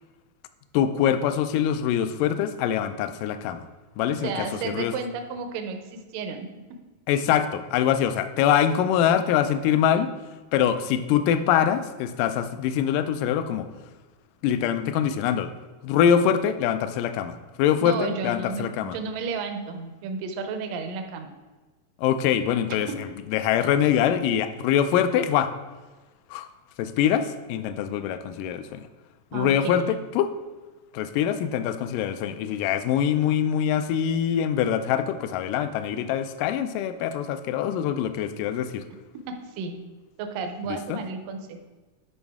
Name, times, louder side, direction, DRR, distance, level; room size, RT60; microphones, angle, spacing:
voice 1, 0.7-3.7 4.0-4.9 7.1-10.1 10.5-13.7 14.4-15.5 15.8-19.0 22.0-25.5 26.3-26.5 26.8-28.9 29.3-30.3 30.9-38.9 40.7-41.0, left 9 dB, 80° left, 10 dB, 1.9 m, -24 dB
voice 2, 4.1-6.5 17.8-21.3 29.3-29.9 39.3-39.8 40.2-41.6, right 4 dB, 75° right, 6 dB, 2.3 m, -32 dB
11.0 x 5.3 x 3.5 m, 1.2 s
omnidirectional pair, 4.2 m